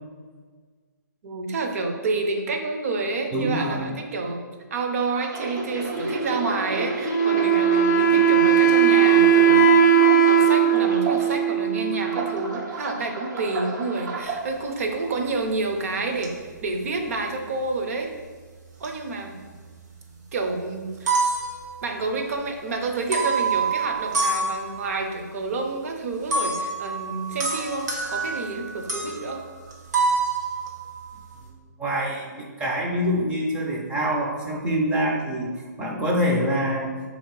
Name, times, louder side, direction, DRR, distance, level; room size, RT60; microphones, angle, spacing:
voice 1, 1.2-4.4 4.7-9.7 10.2-18.1 18.8-19.3 20.3-21.1 21.8-29.4, right 3 dB, 50° right, 3 dB, 0.6 m, -29 dB
voice 2, 3.3-3.9 31.8-37.0, equal, 10° right, -2 dB, 0.4 m, -25 dB
sound 1, 5.0-11.5 11.9-14.4 15.0-15.3, right 3 dB, 85° right, 0.8 m, -30 dB
Wind instrument woodwind instrument, 7.0-12.5, right 7 dB, 70° left, 0.5 m, -18 dB
sound 2, 15.2-15.7 16.2-17.7 18.6-19.7 20.1-20.2 20.8-22.4 23.0-25.0 26.3-31.5, right 4 dB, 65° right, 1.0 m, -27 dB
3.2 x 2.8 x 4.6 m, 1.5 s
hypercardioid pair, 160°, 10 cm